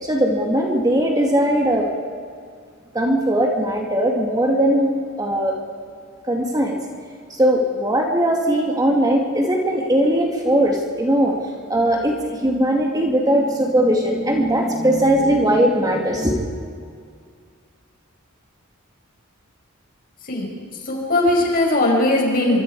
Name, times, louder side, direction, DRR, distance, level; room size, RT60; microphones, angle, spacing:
voice 1, 0.0-1.9 2.9-5.6 6.3-6.8 7.3-11.4 11.7-16.4, right 1 dB, 20° right, 0 dB, 2.3 m, -19 dB
voice 2, 20.9-22.6, left 1 dB, 45° left, 0 dB, 5.5 m, -19 dB
25.5 x 25.0 x 4.8 m, 2.1 s
head